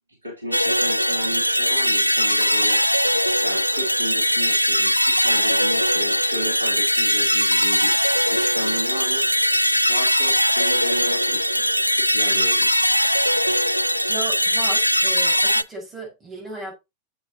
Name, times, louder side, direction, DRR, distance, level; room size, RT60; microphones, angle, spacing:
voice 1, 0.2-2.8 3.4-7.9 8.2-9.2 9.9-11.7 11.9-12.7, equal, 75° right, 2.8 m, -33 dB
sound 1, 0.5-15.6, equal, 90° left, 0.3 m, -20 dB
voice 2, 14.1-16.7, right 3 dB, 20° right, 6.3 m, -35 dB
7.9 x 7.5 x 3.0 m
figure-of-eight pair, 90°, 0 cm